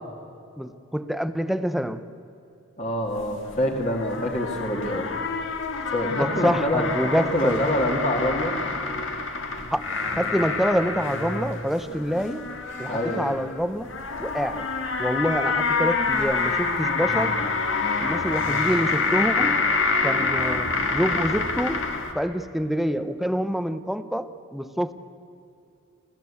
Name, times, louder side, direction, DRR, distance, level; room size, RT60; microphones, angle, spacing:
voice 1, 0.6-2.0 6.1-7.6 9.7-9.9 10.2-12.4 12.8-14.7 15.0-17.4 18.0-19.6 20.0-21.8 22.1-24.9, equal, ahead, 11 dB, 0.7 m, -26 dB
voice 2, 2.8-5.1 5.9-6.9 7.3-8.6 8.8-8.9 12.9-13.3, left 1 dB, 35° left, 1 dB, 2.1 m, -26 dB
sound 1, 3.1-22.1, left 4 dB, 65° left, 1.9 m, -27 dB
27.5 x 15.0 x 8.3 m, 2.7 s
head